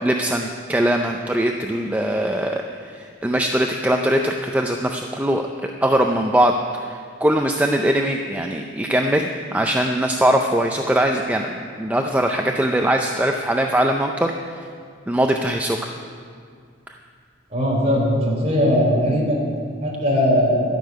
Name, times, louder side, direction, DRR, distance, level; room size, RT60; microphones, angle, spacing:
voice 1, 0.0-14.6 15.1-15.8, right 1 dB, 10° right, 3 dB, 0.5 m, -21 dB
voice 2, 17.5-19.4 19.8-20.6, equal, 35° right, -3 dB, 3.5 m, -19 dB
13.0 x 6.8 x 9.3 m, 2.1 s
head